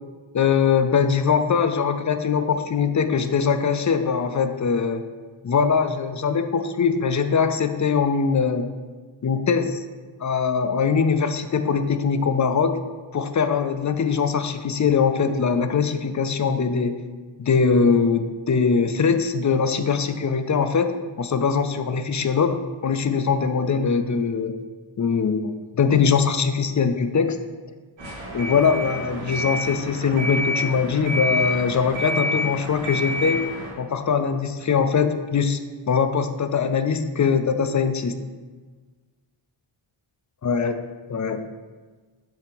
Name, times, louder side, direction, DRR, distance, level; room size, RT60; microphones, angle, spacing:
voice 1, 0.3-5.0 5.4-8.7 9.2-9.8 10.2-12.8 13.1-16.9 17.4-20.9 21.2-24.5 25.0-27.4 28.3-33.4 33.8-35.6 35.9-38.2 40.4-40.8 41.1-41.4, left 6 dB, 35° left, 9 dB, 0.5 m, -22 dB
sound 1, 28.0-33.7, left 1 dB, 65° right, 1.6 m, -28 dB
7.9 x 2.9 x 5.2 m, 1.4 s
cardioid pair, 75°, 50 cm